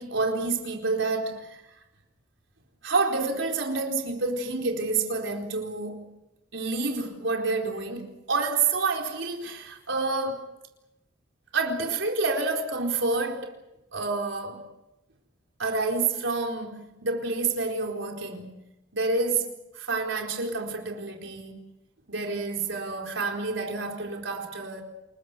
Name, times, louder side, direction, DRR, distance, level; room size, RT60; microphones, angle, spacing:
voice 1, 0.0-1.6 2.8-6.1 6.5-10.5 11.5-13.6 13.9-14.7 15.6-18.6 18.9-21.6 22.1-24.8, right 3 dB, 85° right, 4.4 m, -28 dB
29.0 x 21.5 x 6.2 m
head